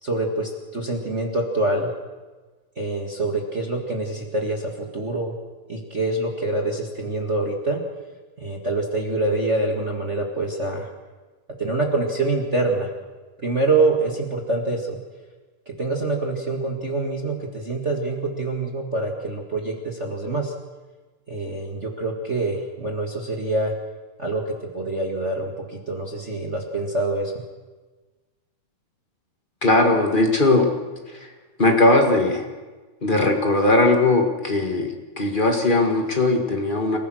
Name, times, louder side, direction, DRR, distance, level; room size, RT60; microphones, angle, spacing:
voice 1, 0.0-1.9 2.7-5.3 5.7-7.8 8.4-10.9 11.6-12.9 13.4-15.0 15.6-20.5 21.3-23.7 24.2-27.4, right 2 dB, 35° right, 1 dB, 1.1 m, -25 dB
voice 2, 29.6-30.7 31.6-32.4 33.0-37.0, left 2 dB, 35° left, 3 dB, 0.7 m, -19 dB
29.0 x 15.0 x 6.3 m, 1.3 s
omnidirectional pair, 4.3 m